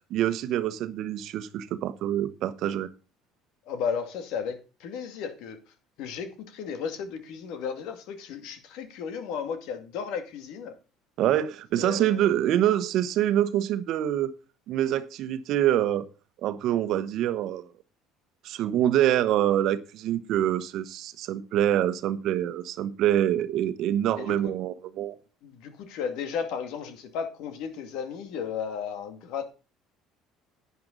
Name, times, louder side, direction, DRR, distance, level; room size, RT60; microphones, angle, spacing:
voice 1, 0.1-2.9 11.2-14.3 14.7-16.1 16.4-17.7 18.4-25.1, right 11 dB, 65° right, 1.1 m, -25 dB
voice 2, 3.7-5.6 6.0-10.7 11.7-12.3 24.2-24.5 25.4-29.5, left 6 dB, 70° left, 2.3 m, -34 dB
10.5 x 9.5 x 4.0 m
supercardioid pair, 90°, 0 cm